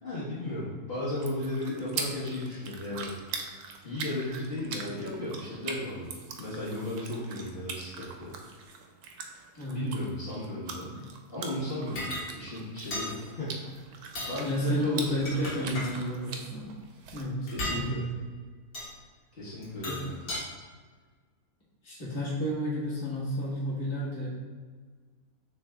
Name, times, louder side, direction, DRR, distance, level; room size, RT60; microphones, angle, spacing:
voice 1, 0.0-3.1 3.8-8.3 9.7-10.9 11.3-13.8 14.2-15.8 17.5-18.0 19.4-20.3, left 1 dB, 45° left, -10 dB, 1.4 m, -35 dB
sound 1, 1.1-17.2, right 5 dB, 85° right, 1.1 m, -42 dB
sound 2, 12.0-12.3 12.9-13.1 14.0-14.4 15.0-15.9 17.5-17.8 18.7-18.9 19.6-20.4, left 1 dB, 65° left, 1.6 m, -35 dB
voice 2, 14.4-16.7 17.1-18.1 19.8-20.0 21.8-24.3, equal, 20° left, -9 dB, 1.3 m, -31 dB
6.6 x 3.4 x 2.3 m, 1.5 s
omnidirectional pair, 1.6 m